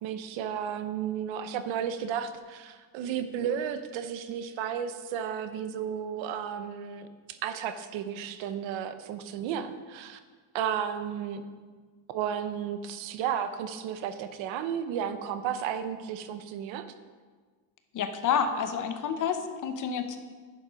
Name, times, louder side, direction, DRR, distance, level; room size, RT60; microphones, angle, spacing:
voice 1, 0.0-10.2 10.5-11.4 12.1-16.9, right 8 dB, 85° right, 10 dB, 0.9 m, -33 dB
voice 2, 17.9-20.2, left 7 dB, 45° left, 7 dB, 0.8 m, -29 dB
10.5 x 7.2 x 5.2 m, 1.5 s
cardioid pair, 170°, 45 cm